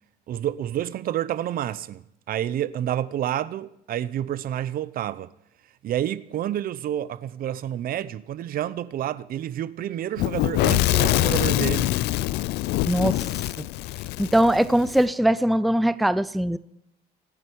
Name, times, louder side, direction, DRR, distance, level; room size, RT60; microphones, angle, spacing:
voice 1, 0.3-5.3 5.8-12.0, right 11 dB, 60° right, 0.7 m, -29 dB
Fire / Explosion, 10.2-15.0, left 17 dB, 80° left, 0.5 m, -24 dB
voice 2, 12.9-13.3 13.6-13.7 14.2-16.6, right 1 dB, ahead, 0.5 m, -21 dB
25.5 x 10.0 x 4.7 m
cardioid pair, 110°, 17 cm